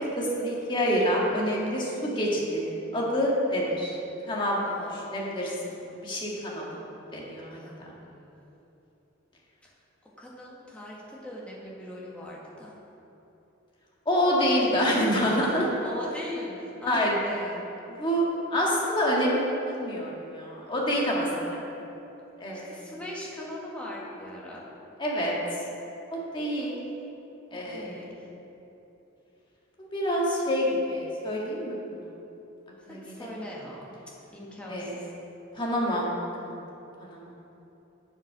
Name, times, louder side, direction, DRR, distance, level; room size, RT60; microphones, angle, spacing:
voice 1, 0.1-4.0 4.3-4.6 5.1-5.5 6.0-6.6 7.1-7.9 14.0-15.7 16.9-17.1 18.0-21.4 22.4-22.8 25.0-25.3 26.1-26.7 27.5-27.9 29.8-32.0 32.9-33.3 34.7-35.1 35.5-36.1 36.4-36.5 37.0-37.2, equal, 25° left, -4 dB, 1.6 m, -27 dB
voice 2, 4.6-5.2 7.5-8.3 9.6-9.7 10.2-12.7 15.8-17.7 22.5-24.7 27.5-28.1 32.9-33.9 34.3-35.1, left 1 dB, 5° left, -5 dB, 1.6 m, -40 dB
7.4 x 7.3 x 6.0 m, 3.0 s
head